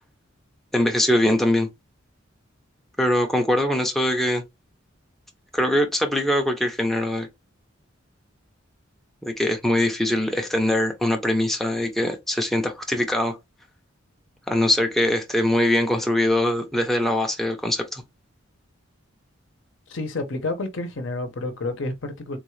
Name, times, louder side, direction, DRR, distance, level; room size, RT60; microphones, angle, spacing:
voice 1, 0.7-1.7 3.0-4.4 5.5-7.3 9.2-13.4 14.5-18.0, left 1 dB, ahead, 0.5 m, -22 dB
voice 2, 19.9-22.4, left 2 dB, 70° left, 0.8 m, -29 dB
3.7 x 2.3 x 3.1 m
head